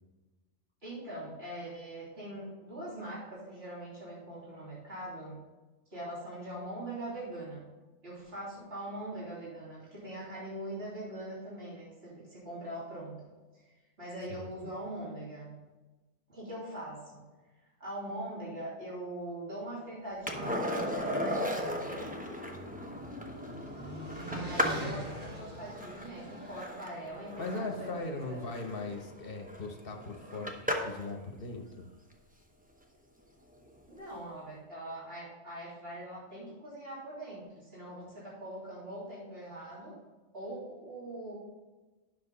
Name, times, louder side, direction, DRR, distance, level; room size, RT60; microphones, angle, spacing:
voice 1, 0.8-5.5 5.9-7.6 8.0-15.6 16.3-17.3 17.8-22.1 24.3-28.4 33.9-40.0 40.3-41.3, right 1 dB, 50° right, -8 dB, 3.6 m, -42 dB
voice 2, 14.3-14.7 27.4-31.9, left 3 dB, 45° left, 3 dB, 1.2 m, -39 dB
Skateboard, 20.3-31.1 33.7-33.8, equal, 10° right, 0.8 m, -37 dB
sound 1, 21.5-26.6, right 1 dB, 75° right, 3.0 m, -43 dB
10.0 x 6.1 x 4.1 m, 1.2 s
omnidirectional pair, 1.4 m